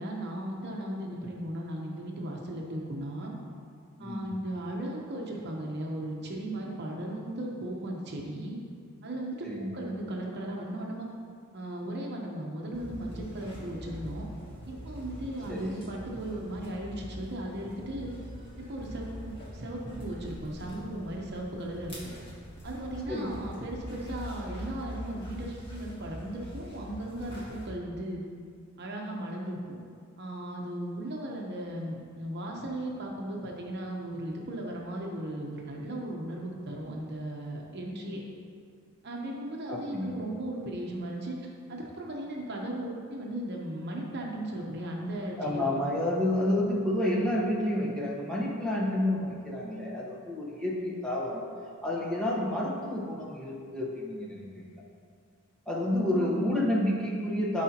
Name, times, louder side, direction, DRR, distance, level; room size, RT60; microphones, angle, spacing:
voice 1, 0.0-3.3 4.0-8.6 9.0-11.1 11.5-14.3 14.6-18.1 18.6-21.9 22.6-28.2 28.8-29.6 30.2-38.2 39.0-45.9 56.1-56.5, right 1 dB, 50° right, -1 dB, 0.9 m, -36 dB
voice 2, 4.0-4.3 9.4-9.7 15.5-15.7 23.1-23.3 39.7-40.2 45.4-51.4 51.8-54.6 55.7-57.6, left 1 dB, 5° left, -6 dB, 1.1 m, -29 dB
sound 1, 12.7-27.7, equal, 25° left, 1.7 m, -43 dB
12.5 x 4.9 x 2.9 m, 2.2 s
head